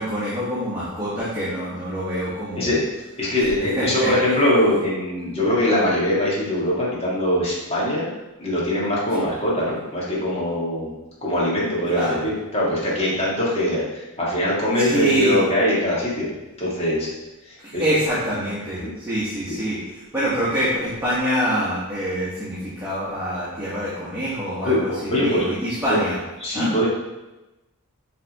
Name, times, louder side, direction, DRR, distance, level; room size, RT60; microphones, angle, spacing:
voice 1, 0.0-2.7 3.6-4.1 9.1-9.2 11.9-12.2 14.8-15.4 17.6-26.2 26.5-26.7, equal, 10° right, -10 dB, 1.4 m, -25 dB
voice 2, 3.2-8.1 8.4-10.9 11.2-16.3 16.6-17.1 17.4-17.8 18.8-18.9 24.6-24.8 25.1-25.4 25.9-26.0 26.4-26.9, left 1 dB, 25° left, -6 dB, 1.7 m, -22 dB
6.6 x 3.6 x 4.1 m, 1.0 s
head